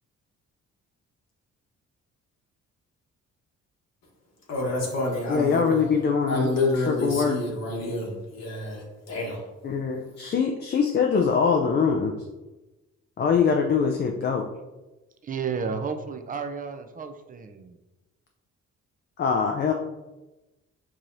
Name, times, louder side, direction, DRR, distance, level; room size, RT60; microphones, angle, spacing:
voice 1, 4.5-5.9 6.3-9.4, left 2 dB, 60° left, -2 dB, 1.1 m, -28 dB
voice 2, 5.3-6.5 6.9-7.4 9.6-12.1 13.2-14.4 19.2-19.7, left 6 dB, 35° left, 2 dB, 0.4 m, -23 dB
voice 3, 15.2-17.8, right 5 dB, 30° right, 7 dB, 0.4 m, -32 dB
4.7 x 2.8 x 2.6 m, 1.1 s
cardioid pair, 90°, 30 cm